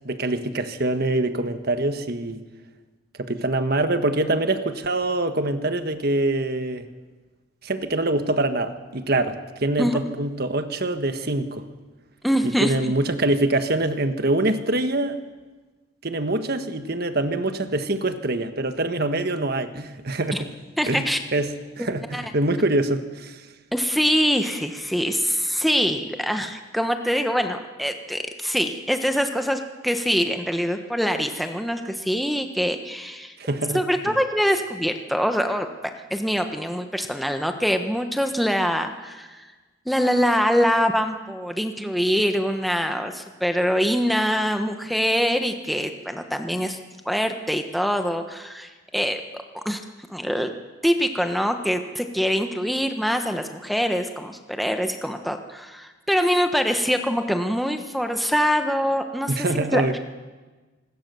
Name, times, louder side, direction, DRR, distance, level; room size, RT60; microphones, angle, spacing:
voice 1, 0.0-2.4 3.2-6.9 7.6-11.6 12.6-15.2 16.0-20.5 20.9-21.0 21.3-23.4 33.4-34.1 59.4-60.0, right 2 dB, 50° right, 9 dB, 1.5 m, -24 dB
voice 2, 12.2-12.9 20.3-20.4 20.8-21.2 21.8-22.2 23.7-33.3 33.7-35.7 36.1-39.5 39.9-46.8 47.0-49.8 50.1-50.5 50.8-60.0, equal, ahead, 5 dB, 1.2 m, -24 dB
25.5 x 20.0 x 7.0 m, 1.3 s
head